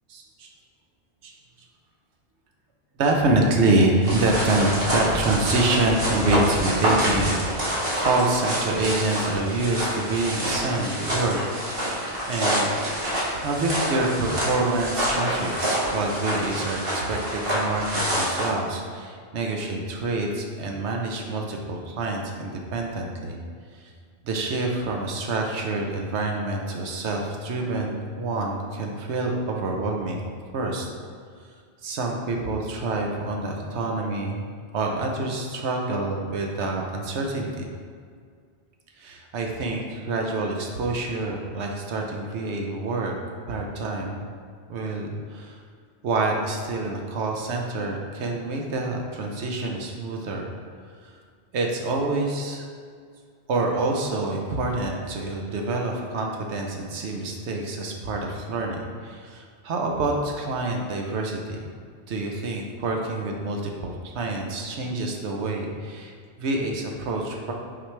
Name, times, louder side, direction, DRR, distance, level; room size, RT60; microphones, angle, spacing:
voice 1, 0.1-0.5 1.2-1.3 3.0-11.4 11.7-11.8 12.3-12.7 13.3-23.4 23.8-23.9 24.2-30.2 30.5-30.9 31.8-34.5 34.7-37.7 39.0-43.1 43.5-44.3 44.7-45.6 46.0-50.4 51.0-51.1 51.5-52.7 53.5-61.7 62.1-67.5, right 2 dB, 90° right, 1 dB, 1.0 m, -27 dB
sound 1, 4.0-18.5, equal, 55° right, 1.6 m, -26 dB
5.9 x 5.0 x 3.3 m, 2.1 s
omnidirectional pair, 1.1 m